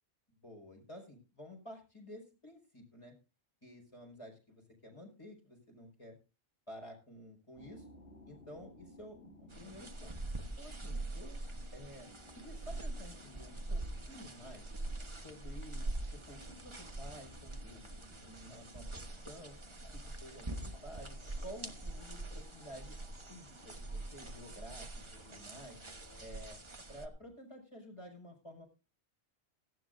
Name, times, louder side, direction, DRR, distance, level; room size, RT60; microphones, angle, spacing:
voice 1, 0.4-3.1 3.6-6.2 6.7-7.9 8.3-10.2 10.6-11.4 11.7-12.1 12.4-13.8 14.1-14.6 15.2-17.8 18.2-19.5 19.9-21.2 21.4-23.0 23.3-24.9 25.1-25.8 26.2-26.6 26.9-28.7, equal, 25° left, 1 dB, 5.2 m, -52 dB
sound 1, 7.5-26.3, left 2 dB, 70° left, 4.3 m, -60 dB
sound 2, 9.5-27.1, right 2 dB, 25° right, 1.2 m, -44 dB
18.0 x 15.0 x 2.6 m, 0.31 s
omnidirectional pair, 1.2 m